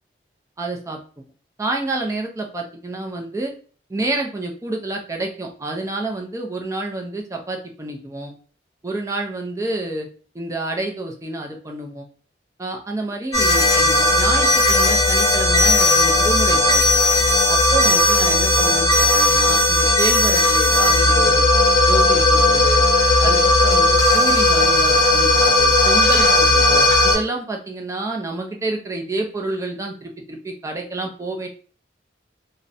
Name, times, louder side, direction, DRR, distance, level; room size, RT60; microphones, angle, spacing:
voice 1, 0.6-1.2 1.6-3.5 3.9-8.3 8.8-10.1 10.3-12.1 12.6-16.8 17.5-21.4 21.9-22.8 23.2-31.5, right 2 dB, 15° right, 1 dB, 0.4 m, -28 dB
sound 1, 13.3-27.2, left 1 dB, 20° left, 0.7 m, -16 dB
2.4 x 2.0 x 2.6 m, 0.39 s
head